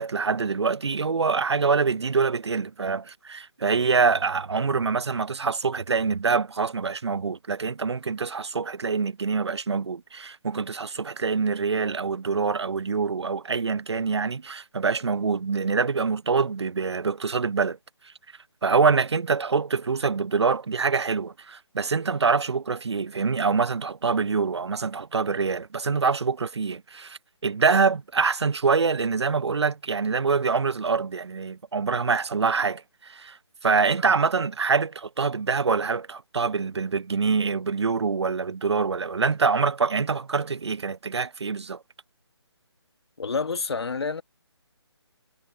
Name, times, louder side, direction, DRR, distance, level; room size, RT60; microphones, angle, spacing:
voice 1, 0.0-17.8 18.6-33.4 33.6-41.8, right 5 dB, 70° right, 0.8 m, -25 dB
voice 2, 43.2-44.2, left 4 dB, 65° left, 1.8 m, -28 dB
figure-of-eight pair, 155°, 14 cm